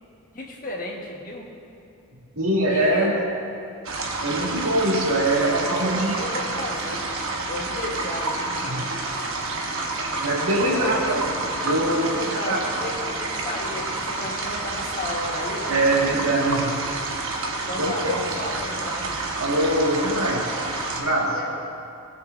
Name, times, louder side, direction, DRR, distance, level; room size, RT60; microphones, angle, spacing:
voice 1, 0.3-1.5 2.7-3.1 5.9-7.0 7.5-8.8 10.6-11.0 12.1-16.2 17.7-19.1 21.3-21.5, left 2 dB, 40° left, -2 dB, 1.4 m, -33 dB
voice 2, 2.3-3.1 4.2-6.2 8.6-9.0 10.2-11.4 11.6-12.2 12.5-12.6 15.7-16.8 17.8-18.2 19.4-20.6 20.9-21.4, right 1 dB, 90° right, -3 dB, 1.9 m, -23 dB
sound 1, 3.8-21.0, right 3 dB, 65° right, 1.1 m, -29 dB
19.0 x 6.7 x 2.6 m, 2.5 s
head